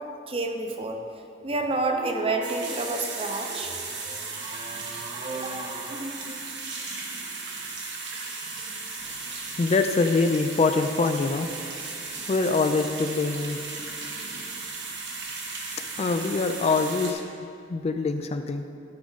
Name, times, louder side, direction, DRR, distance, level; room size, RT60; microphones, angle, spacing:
voice 1, 0.3-1.0 1.4-6.4, right 2 dB, 30° right, 3 dB, 0.7 m, -30 dB
sound 1, 2.4-17.1, right 4 dB, 70° right, 1.2 m, -36 dB
voice 2, 9.6-11.5 12.3-13.6 16.0-17.2 17.7-18.6, left 3 dB, 35° left, 8 dB, 0.3 m, -24 dB
11.5 x 5.0 x 4.0 m, 2.5 s
head